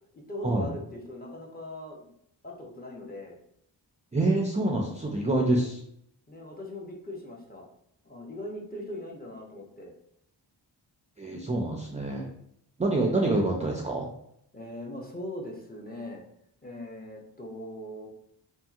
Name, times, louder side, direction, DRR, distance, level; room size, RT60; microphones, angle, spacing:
voice 1, 0.1-2.1 2.4-3.4 6.3-7.7 8.0-9.9 14.5-16.2 16.6-18.1, left 1 dB, 20° left, -1 dB, 0.7 m, -40 dB
voice 2, 4.1-5.8 11.2-12.3 12.8-14.1, right 2 dB, 15° right, -1 dB, 0.4 m, -26 dB
2.8 x 2.7 x 2.4 m, 0.73 s
cardioid pair, 70°, 45 cm